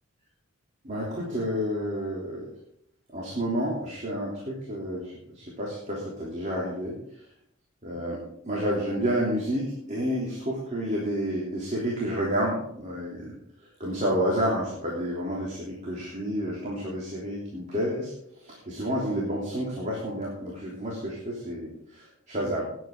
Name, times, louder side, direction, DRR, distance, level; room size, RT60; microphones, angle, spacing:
voice 1, 0.8-2.5 3.1-6.9 7.8-13.3 13.8-22.7, equal, 35° right, -4 dB, 3.2 m, -30 dB
19.0 x 9.2 x 3.8 m, 0.72 s
head